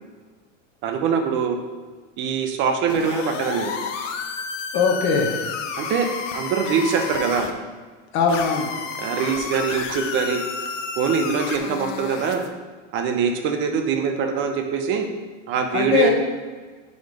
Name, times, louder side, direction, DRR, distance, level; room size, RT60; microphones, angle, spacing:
voice 1, 0.8-1.6 2.2-3.7 5.8-6.1 6.3-7.5 9.0-10.4 11.0-12.5 12.9-15.1 15.5-16.1, right 6 dB, 30° right, 5 dB, 0.7 m, -23 dB
sound 1, 2.9-7.5 8.3-12.5, left 6 dB, 80° left, 0.8 m, -31 dB
voice 2, 4.7-5.4 8.1-8.7 15.7-16.1, left 5 dB, 35° left, 1 dB, 0.9 m, -20 dB
5.4 x 3.9 x 5.1 m, 1.4 s
supercardioid pair, 145°, 37 cm